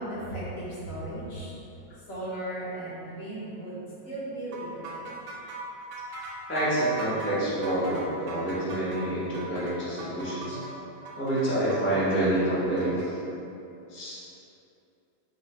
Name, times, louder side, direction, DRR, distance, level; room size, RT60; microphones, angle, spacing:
voice 1, 0.0-1.6 2.1-5.1 5.9-6.0 8.4-8.5 9.6-11.3, right 1 dB, 60° left, -9 dB, 1.3 m, -38 dB
sound 1, 4.5-13.1, right 3 dB, 75° right, 1.1 m, -40 dB
voice 2, 6.5-10.6 11.2-13.2 13.9-14.2, right 1 dB, 10° left, -11 dB, 0.6 m, -27 dB
3.1 x 2.7 x 4.2 m, 2.7 s
omnidirectional pair, 1.7 m